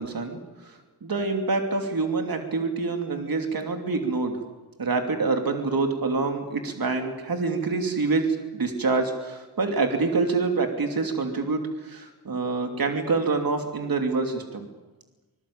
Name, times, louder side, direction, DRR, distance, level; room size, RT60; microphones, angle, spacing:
voice 1, 0.0-4.4 4.8-14.7, right 3 dB, 55° right, 4 dB, 2.9 m, -26 dB
25.5 x 20.5 x 8.7 m, 1.2 s
wide cardioid pair, 135°, 41 cm